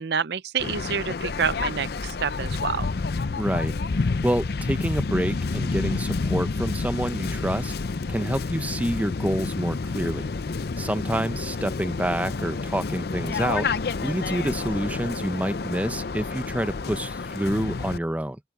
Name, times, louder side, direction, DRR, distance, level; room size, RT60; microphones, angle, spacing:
voice 1, 0.0-2.9 11.1-11.2, right 6 dB, 65° right, 0.6 m, -28 dB
Waves surf, 0.6-18.0, left 4 dB, 60° left, 0.5 m, -29 dB
voice 2, 3.4-3.7 4.2-7.7 8.1-10.3 10.8-13.7 14.0-18.4, right 1 dB, 10° right, 0.6 m, -27 dB
open air
head